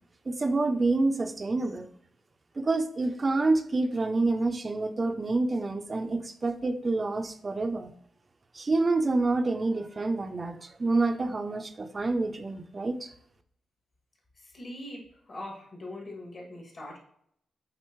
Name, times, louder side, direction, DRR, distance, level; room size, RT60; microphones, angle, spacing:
voice 1, 0.3-1.9 2.6-7.9 8.5-13.1, right 3 dB, 30° right, 8 dB, 0.5 m, -27 dB
voice 2, 14.4-17.0, left 1 dB, 45° left, -1 dB, 2.2 m, -42 dB
7.7 x 4.0 x 3.1 m, 0.70 s
cardioid pair, 110°, 0 cm